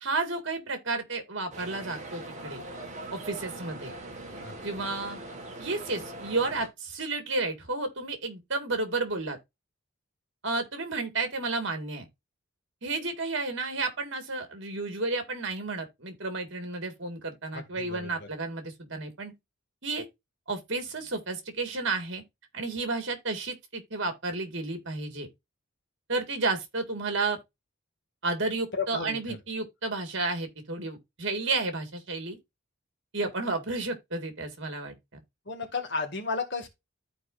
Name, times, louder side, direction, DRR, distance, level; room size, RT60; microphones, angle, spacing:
voice 1, 0.0-2.6 3.1-3.9 4.6-5.2 5.6-9.4 10.4-12.1 12.8-19.3 19.8-20.1 20.5-22.2 22.5-25.3 26.1-27.4 28.2-32.4 33.1-35.0, right 3 dB, 55° right, 2.0 m, -32 dB
sound 1, 1.5-6.7, right 2 dB, 35° right, 1.6 m, -41 dB
voice 2, 17.5-18.3 28.7-29.7 35.5-36.7, left 4 dB, 55° left, 2.0 m, -34 dB
13.5 x 4.6 x 2.5 m
head